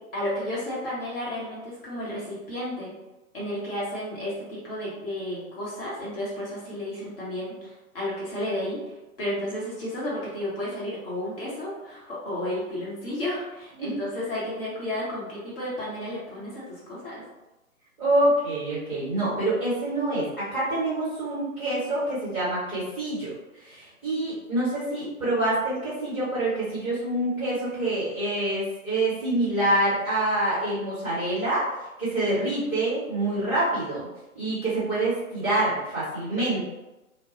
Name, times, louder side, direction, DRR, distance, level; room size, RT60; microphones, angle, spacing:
voice 1, 0.1-2.9 3.3-8.8 9.2-17.2, left 1 dB, 40° left, -7 dB, 1.0 m, -32 dB
voice 2, 18.0-23.3 23.6-31.6 32.0-34.1 34.3-36.6, right 1 dB, 5° right, -12 dB, 1.0 m, -26 dB
2.2 x 2.2 x 2.9 m, 1.0 s
figure-of-eight pair, 125°, 43 cm